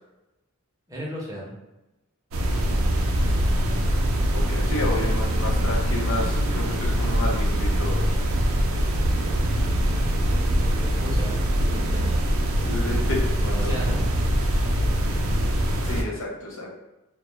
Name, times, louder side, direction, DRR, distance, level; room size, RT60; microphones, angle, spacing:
voice 1, 0.9-1.5 10.8-12.0 13.5-14.0, equal, 15° right, -4 dB, 0.6 m, -35 dB
sound 1, 2.3-16.0, equal, 65° right, 0.4 m, -23 dB
voice 2, 4.3-8.0 12.6-13.7 15.8-16.7, left 2 dB, 60° left, -2 dB, 0.6 m, -31 dB
2.1 x 2.0 x 3.0 m, 1.0 s
head